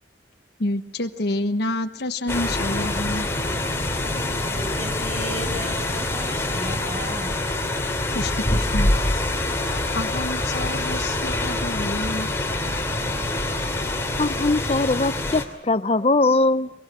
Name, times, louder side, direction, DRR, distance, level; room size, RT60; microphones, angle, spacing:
voice 1, 0.6-3.3 8.1-8.9 9.9-12.3, left 1 dB, 60° left, 5 dB, 1.2 m, -28 dB
sound 1, 2.3-15.4, left 2 dB, 15° left, 2.7 m, -25 dB
voice 2, 4.5-7.4, equal, 30° right, 3 dB, 6.7 m, -35 dB
voice 3, 14.2-16.7, left 2 dB, 35° left, 13 dB, 0.8 m, -21 dB
23.5 x 22.5 x 7.5 m, 0.82 s
head